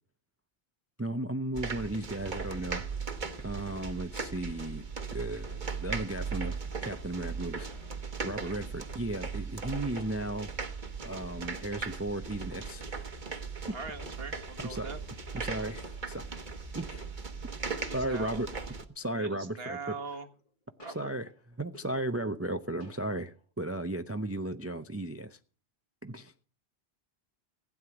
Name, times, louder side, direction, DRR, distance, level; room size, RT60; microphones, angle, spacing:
voice 1, 1.0-2.8 3.4-6.6 6.8-7.7 8.2-10.5 11.0-13.1 13.7-13.8 14.6-14.9 15.3-16.3 16.7-17.1 17.9-18.5 19.0-20.0 20.9-21.3 21.6-25.4 26.0-26.3, right 1 dB, 20° right, 0.5 m, -35 dB
sound 1, 1.5-18.8, right 5 dB, 50° right, 1.3 m, -38 dB
sound 2, 7.6-8.5 9.9-10.4 11.1-12.0 12.9-13.5 13.8-15.4 15.8-16.5 16.9-17.4 18.1-19.0 19.9-20.5 20.8-22.5 22.8-23.4, left 2 dB, 50° left, 2.2 m, -55 dB
voice 2, 13.7-15.0 17.8-18.4 19.2-20.3 20.8-21.1, right 4 dB, 65° right, 1.8 m, -42 dB
16.0 x 9.5 x 6.0 m
omnidirectional pair, 1.1 m